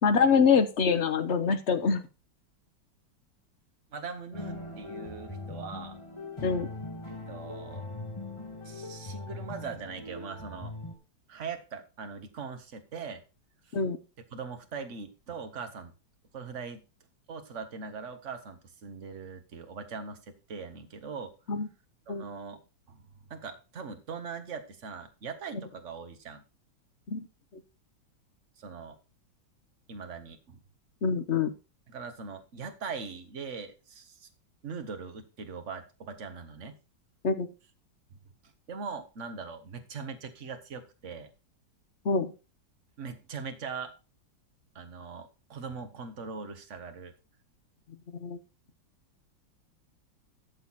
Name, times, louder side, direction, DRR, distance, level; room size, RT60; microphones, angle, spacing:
voice 1, 0.0-2.0 6.4-6.7 13.7-14.0 21.5-21.7 22.1-22.2 27.1-27.3 31.0-31.5 37.2-37.5 42.0-42.3 48.2-48.4, left 5 dB, 45° left, 9 dB, 1.1 m, -25 dB
voice 2, 3.9-6.0 7.3-8.1 8.6-10.7 11.3-13.2 13.6-13.8 14.3-15.9 16.3-16.8 17.3-21.3 22.1-22.6 22.9-23.0 23.3-26.4 28.6-29.0 29.9-30.6 31.9-34.3 34.6-36.7 38.1-38.2 38.4-41.3 43.0-43.9 44.7-47.1, right 5 dB, 40° right, 7 dB, 1.6 m, -41 dB
sound 1, 4.3-10.9, left 2 dB, 15° left, 2.4 m, -40 dB
13.0 x 6.8 x 4.1 m, 0.31 s
omnidirectional pair, 2.1 m